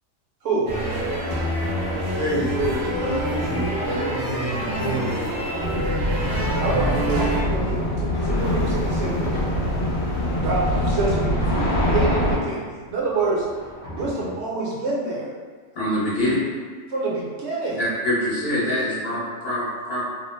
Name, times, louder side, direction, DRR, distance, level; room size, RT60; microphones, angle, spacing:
sound 1, 0.7-7.4, right 1 dB, 90° right, 0.3 m, -26 dB
voice 1, 2.1-5.4, equal, 15° left, -12 dB, 0.6 m, -28 dB
sound 2, 5.6-12.4, left 1 dB, 75° left, 0.9 m, -23 dB
voice 2, 6.6-9.3 9.6-9.8 10.3-12.6 12.9-13.5 13.9-15.3 16.9-17.8, right 3 dB, 65° right, -4 dB, 0.9 m, -27 dB
sound 3, 8.2-14.4, equal, 25° right, 0.6 m, -40 dB
voice 3, 15.8-16.4 18.0-20.0, left 1 dB, 50° left, -9 dB, 0.9 m, -24 dB
2.4 x 2.0 x 3.0 m, 1.5 s
omnidirectional pair, 1.4 m